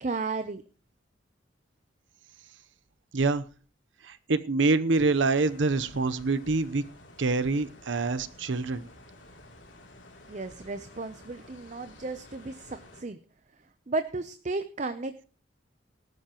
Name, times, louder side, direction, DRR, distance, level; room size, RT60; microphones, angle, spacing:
voice 1, 0.0-0.6 10.3-13.2 13.9-15.3, right 3 dB, 40° right, 10 dB, 0.6 m, -34 dB
voice 2, 3.1-3.5 4.0-6.8 7.2-8.8, right 3 dB, 80° right, 13 dB, 0.8 m, -26 dB
sound 1, 4.9-13.0, left 1 dB, 85° left, 3.0 m, -52 dB
18.5 x 12.5 x 3.0 m, 0.38 s
head